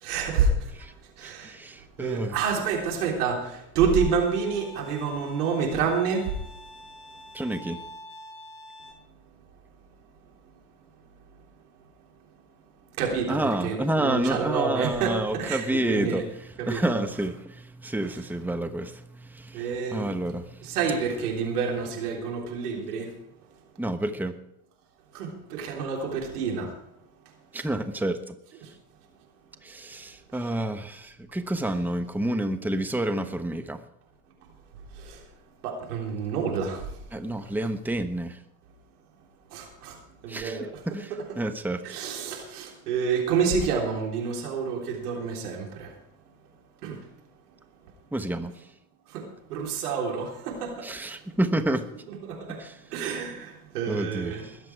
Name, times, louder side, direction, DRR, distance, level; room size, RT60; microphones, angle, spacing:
voice 1, 0.0-0.9 1.2-1.6 2.0-6.3 13.0-16.2 16.6-17.0 19.5-20.1 20.6-23.1 25.1-26.7 27.6-27.7 28.6-28.7 30.3-30.5 34.9-35.2 35.6-37.0 37.4-37.5 39.5-40.0 40.2-40.8 41.8-45.9 46.8-47.0 49.1-50.9 52.1-52.6 52.9-54.5, right 5 dB, 85° right, 0 dB, 3.6 m, -28 dB
voice 2, 1.2-2.4 7.3-7.8 13.3-16.2 16.6-20.6 23.8-24.3 27.5-28.3 29.6-33.8 37.1-38.4 40.3-41.8 48.1-48.5 50.8-51.9 52.6-52.8 53.9-54.6, right 1 dB, 5° right, 9 dB, 1.1 m, -29 dB
Bowed string instrument, 3.9-8.9, equal, 30° left, 4.5 m, -46 dB
20.5 x 7.9 x 4.7 m, 0.85 s
hypercardioid pair, 70°, 45 cm